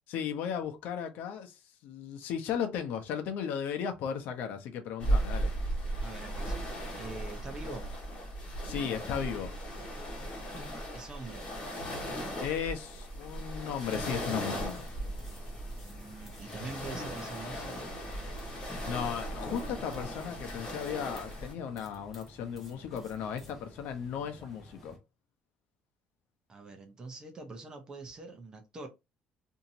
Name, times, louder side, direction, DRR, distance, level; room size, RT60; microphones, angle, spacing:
voice 1, 0.1-5.5 8.6-9.5 12.4-14.9 18.9-25.0, left 8 dB, 70° left, 0.7 m, -36 dB
sound 1, 5.0-21.5, right 1 dB, 30° left, 1.4 m, -36 dB
voice 2, 6.0-6.7 7.0-7.9 10.9-11.5 15.8-17.9 26.5-28.9, right 3 dB, 25° right, 0.7 m, -44 dB
sound 2, 14.4-25.0, equal, 5° left, 0.9 m, -53 dB
2.9 x 2.7 x 2.6 m
cardioid pair, 170°, 3 cm